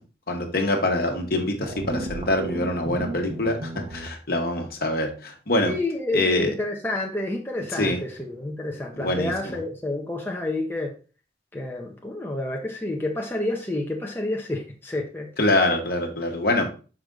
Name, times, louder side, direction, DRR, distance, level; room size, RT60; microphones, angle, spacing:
voice 1, 0.3-5.7 6.1-6.5 7.7-8.0 8.9-9.6 15.4-16.7, left 2 dB, 55° left, 3 dB, 1.2 m, -24 dB
sound 1, 1.6-4.1, right 1 dB, 35° right, 1.0 m, -34 dB
voice 2, 5.6-10.9 11.5-15.3, left 2 dB, 10° left, 0 dB, 0.8 m, -29 dB
5.9 x 4.9 x 3.8 m, 0.35 s
head